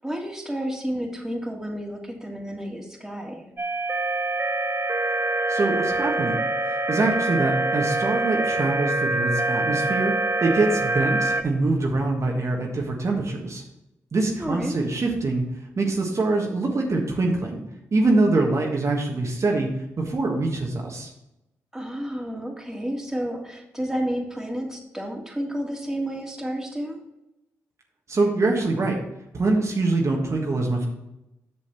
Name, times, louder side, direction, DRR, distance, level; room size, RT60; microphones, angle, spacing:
voice 1, 0.0-3.5 14.4-14.8 21.7-27.0, equal, 5° right, -1 dB, 2.5 m, -31 dB
sound 1, 3.6-11.4, right 2 dB, 30° right, 1.0 m, -25 dB
voice 2, 5.5-10.1 10.4-13.6 14.1-15.4 15.8-17.6 17.9-19.7 20.0-21.1 28.1-29.0 29.3-30.9, right 2 dB, 50° right, -1 dB, 1.5 m, -24 dB
7.5 x 6.3 x 4.4 m, 0.90 s
hypercardioid pair, 40°, 7 cm